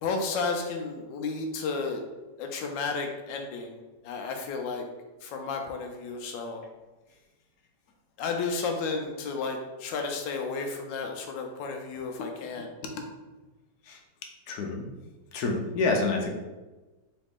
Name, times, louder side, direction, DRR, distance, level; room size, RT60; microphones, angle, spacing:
voice 1, 0.0-2.0 2.4-3.8 4.0-4.8 5.2-6.6 8.2-12.7, left 4 dB, 85° left, 3 dB, 1.3 m, -32 dB
voice 2, 14.5-14.9 15.3-16.3, left 3 dB, 70° left, 2 dB, 1.1 m, -28 dB
4.0 x 3.2 x 3.5 m, 1.2 s
omnidirectional pair, 1.9 m